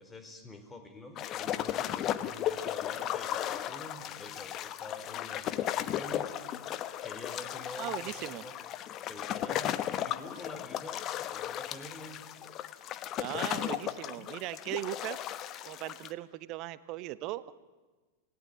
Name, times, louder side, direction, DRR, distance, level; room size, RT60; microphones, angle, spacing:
voice 1, 0.0-6.4 7.0-8.7 9.1-12.2, left 2 dB, 10° left, 7 dB, 4.0 m, -47 dB
sound 1, 1.2-16.1, left 11 dB, 35° left, 1.1 m, -35 dB
voice 2, 7.8-8.4 13.2-15.2 15.6-17.4, right 16 dB, 40° right, 16 dB, 1.0 m, -38 dB
28.0 x 18.5 x 9.2 m, 1.3 s
figure-of-eight pair, 90°, 0 cm